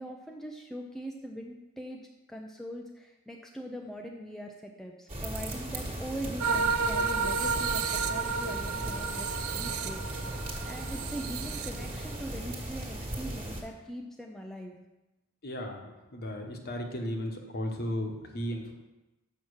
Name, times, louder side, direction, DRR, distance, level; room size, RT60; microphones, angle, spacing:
voice 1, 0.0-10.0 10.6-14.8, equal, ahead, 1 dB, 0.5 m, -41 dB
sound 1, 5.1-13.6, right 1 dB, 25° right, 1.7 m, -37 dB
sound 2, 6.4-12.1, right 5 dB, 70° right, 0.5 m, -31 dB
voice 2, 15.4-15.8 16.1-18.7, equal, 45° left, 3 dB, 1.2 m, -35 dB
7.3 x 5.7 x 6.4 m, 1.0 s
head